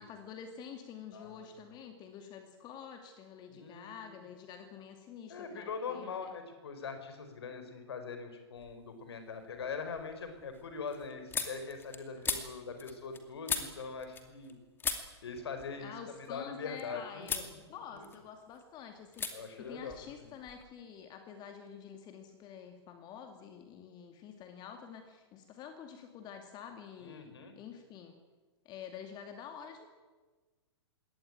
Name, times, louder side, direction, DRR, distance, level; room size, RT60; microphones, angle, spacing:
voice 1, 0.0-6.3 12.1-12.2 15.8-28.2 28.6-29.9, left 7 dB, 30° left, 6 dB, 2.4 m, -48 dB
voice 2, 1.1-1.6 3.5-4.1 5.3-14.5 15.2-18.1 19.3-20.3 27.0-27.5, left 5 dB, 65° left, 8 dB, 4.9 m, -42 dB
sound 1, 8.6-9.1 9.5-14.5 14.8-16.8 17.2-17.5 17.9-18.6 19.1-19.3 19.6-20.7, left 5 dB, 15° left, 2.6 m, -40 dB
22.0 x 18.5 x 9.1 m, 1.3 s
figure-of-eight pair, 110°, 14 cm